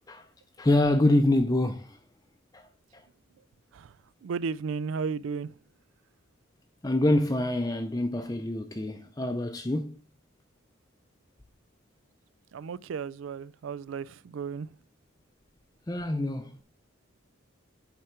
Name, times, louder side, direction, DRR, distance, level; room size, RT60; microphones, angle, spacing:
voice 1, 0.6-2.0 2.5-2.7 6.8-10.0 15.9-16.5, left 1 dB, 20° left, 0.5 m, -26 dB
voice 2, 3.7-5.6 12.5-14.7, right 5 dB, 75° right, 0.3 m, -34 dB
7.9 x 4.9 x 4.4 m
head